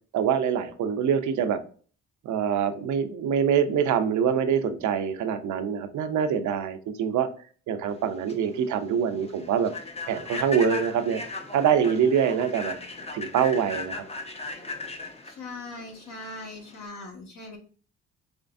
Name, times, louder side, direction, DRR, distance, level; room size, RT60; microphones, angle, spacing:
voice 1, 0.1-1.6 2.2-7.3 7.7-9.7 10.1-11.2 11.5-12.8 13.1-14.0, right 7 dB, 70° right, 8 dB, 0.7 m, -25 dB
Human voice / Train, 8.0-16.9, left 3 dB, 20° left, 0.7 m, -37 dB
voice 2, 15.2-17.6, left 2 dB, 65° left, 0 dB, 1.6 m, -40 dB
4.3 x 3.2 x 2.5 m, 0.41 s
cardioid pair, 90°, 30 cm